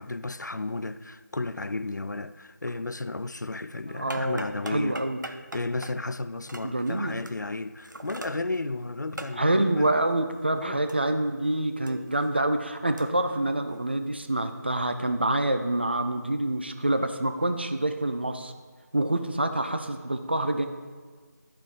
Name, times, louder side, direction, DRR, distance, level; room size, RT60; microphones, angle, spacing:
voice 1, 0.0-9.9 10.5-10.9, left 2 dB, 70° left, 0.4 m, -33 dB
voice 2, 3.9-4.4 4.7-5.2 6.6-7.1 9.4-18.5 18.9-20.7, right 1 dB, 35° right, 0.5 m, -26 dB
sound 1, 3.9-11.4 11.7-14.1, right 2 dB, 80° right, 0.7 m, -44 dB
13.5 x 4.6 x 3.7 m
figure-of-eight pair, 165°, 10 cm